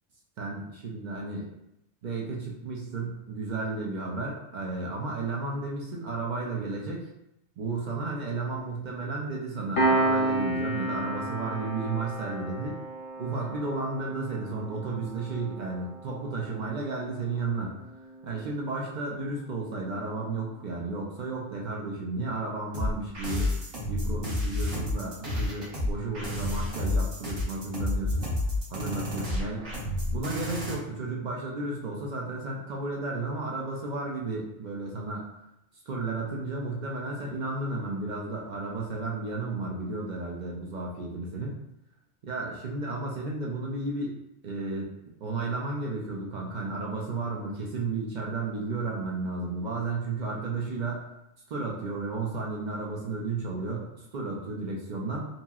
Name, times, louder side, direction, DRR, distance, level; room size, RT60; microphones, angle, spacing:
voice 1, 0.4-1.5 2.0-7.1 7.6-12.8 13.2-17.7 18.2-23.5 23.9-28.3 28.7-29.6 30.1-35.2 35.9-41.5 42.2-44.1 44.4-44.9 45.2-51.0 51.5-55.3, right 3 dB, 65° right, -2 dB, 0.4 m, -33 dB
Piano, 9.8-20.8, right 2 dB, 55° left, 0.7 m, -33 dB
sound 1, 22.7-30.7, left 1 dB, 50° right, 1.0 m, -30 dB
2.9 x 2.7 x 2.3 m, 0.84 s
omnidirectional pair, 1.3 m